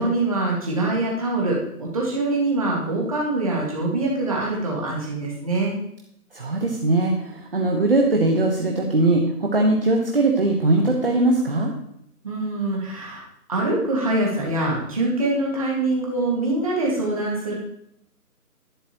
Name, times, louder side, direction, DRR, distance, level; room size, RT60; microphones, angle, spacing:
voice 1, 0.0-5.7 12.2-13.2 13.5-17.5, right 2 dB, 20° right, -3 dB, 2.0 m, -24 dB
voice 2, 6.3-11.7, right 2 dB, 35° right, 1 dB, 1.1 m, -20 dB
14.0 x 11.5 x 3.0 m, 0.75 s
figure-of-eight pair, 175°, 46 cm